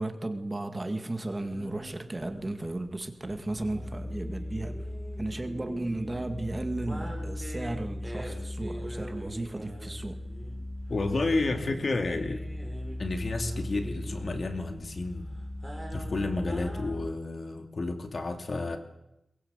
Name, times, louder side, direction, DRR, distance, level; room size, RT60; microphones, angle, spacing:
voice 1, 0.0-4.8 5.2-10.2, right 2 dB, 25° right, 7 dB, 2.1 m, -34 dB
sound 1, 1.3-17.0, right 1 dB, 5° right, 7.1 m, -45 dB
sound 2, 3.2-17.1, left 1 dB, 10° left, 1.7 m, -39 dB
voice 2, 10.9-12.4 13.0-15.3 15.9-18.8, left 3 dB, 55° left, 6 dB, 2.7 m, -31 dB
23.0 x 21.0 x 8.3 m, 0.86 s
wide cardioid pair, 125°, 0 cm